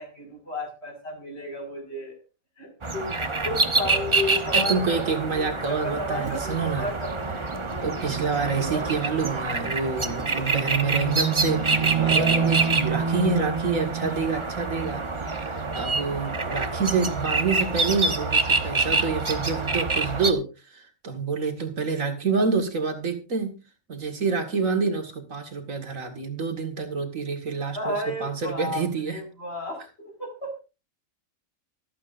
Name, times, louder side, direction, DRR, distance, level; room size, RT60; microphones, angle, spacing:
voice 1, 0.0-2.2 2.6-7.5 8.3-8.9 27.7-30.5, left 1 dB, 50° left, 2 dB, 5.9 m, -33 dB
sound 1, 2.8-20.3, right 4 dB, 25° right, 0.9 m, -26 dB
voice 2, 4.5-6.9 7.8-23.6 23.9-29.2, right 4 dB, 75° right, 5 dB, 2.3 m, -27 dB
24.5 x 8.5 x 2.6 m, 0.29 s
omnidirectional pair, 1.4 m